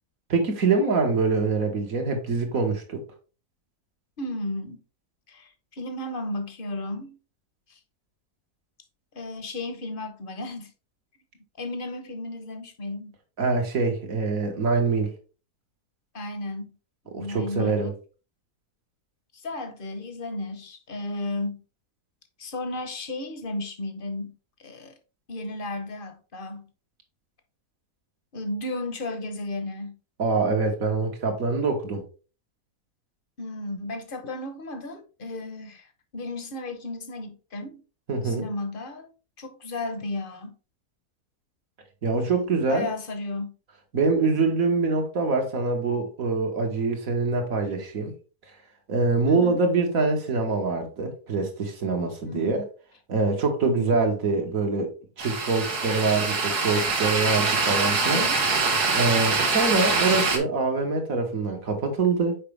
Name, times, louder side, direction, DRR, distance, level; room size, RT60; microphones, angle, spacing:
voice 1, 0.3-3.0 13.4-15.1 17.1-17.9 30.2-32.0 38.1-38.5 42.0-42.9 43.9-48.1 48.9-52.7 53.1-54.9 55.2-58.3 58.9-62.4, right 3 dB, 65° right, 1.8 m, -24 dB
voice 2, 4.2-4.8 5.3-7.2 7.7-7.8 9.1-10.7 11.6-13.2 16.1-16.8 17.0-18.0 19.3-21.6 22.4-24.4 24.6-24.9 25.3-26.7 28.3-30.0 33.4-37.8 38.2-39.1 39.4-40.5 42.2-42.3 42.7-43.6 49.3-49.6 52.2-52.5 53.6-54.0 58.0-58.4, left 2 dB, 40° left, 1.0 m, -34 dB
sound 1, 55.2-60.4, right 4 dB, 90° right, 1.9 m, -24 dB
6.6 x 4.8 x 3.3 m
omnidirectional pair, 1.6 m